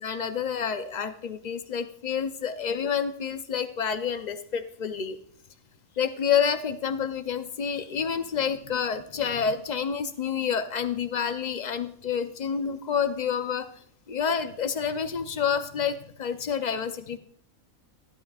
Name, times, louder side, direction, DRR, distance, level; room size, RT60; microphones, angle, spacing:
voice 1, 0.0-5.2 6.0-13.7 14.1-17.2, left 7 dB, 50° left, 9 dB, 0.5 m, -28 dB
12.5 x 12.0 x 2.4 m, 0.62 s
omnidirectional pair, 1.5 m